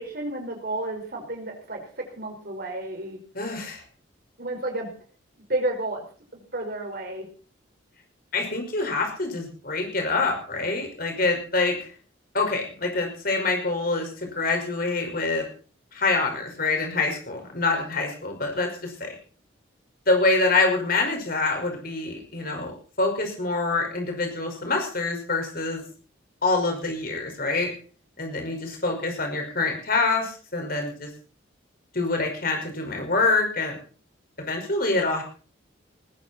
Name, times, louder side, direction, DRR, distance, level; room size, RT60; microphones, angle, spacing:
voice 1, 0.0-3.2 4.4-4.9 5.5-6.0 6.3-7.3, right 1 dB, 50° right, 2 dB, 5.2 m, -31 dB
voice 2, 3.3-3.8 8.3-11.9 12.3-15.5 15.9-19.2 20.1-25.9 26.4-27.7 28.2-31.1 31.9-33.8 34.4-35.2, left 3 dB, 50° left, 3 dB, 5.4 m, -26 dB
20.0 x 15.0 x 4.4 m, 0.40 s
head